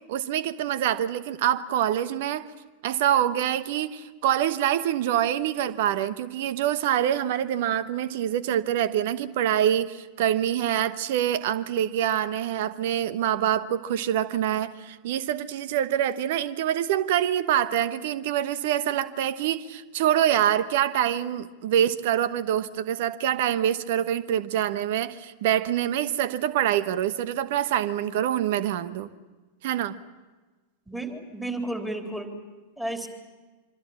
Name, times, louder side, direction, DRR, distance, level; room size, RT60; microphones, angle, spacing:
voice 1, 0.1-2.5 2.8-29.1 29.6-30.0, right 11 dB, 50° right, 15 dB, 1.1 m, -25 dB
voice 2, 30.9-32.3 32.8-33.1, right 1 dB, 5° right, 4 dB, 3.7 m, -32 dB
25.5 x 25.0 x 7.4 m, 1.3 s
figure-of-eight pair, 90°, 0 cm